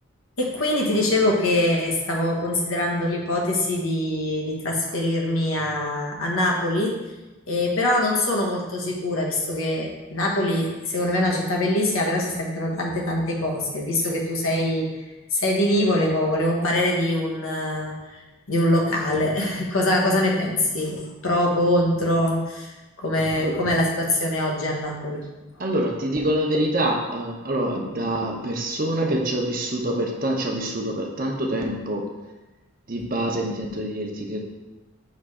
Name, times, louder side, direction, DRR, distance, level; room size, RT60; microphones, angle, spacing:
voice 1, 0.4-6.9 7.5-15.0 15.3-25.3, left 1 dB, 80° left, -1 dB, 1.2 m, -23 dB
voice 2, 25.6-32.1 32.9-34.4, right 1 dB, 40° right, 0 dB, 0.8 m, -26 dB
6.4 x 3.3 x 4.8 m, 1.1 s
head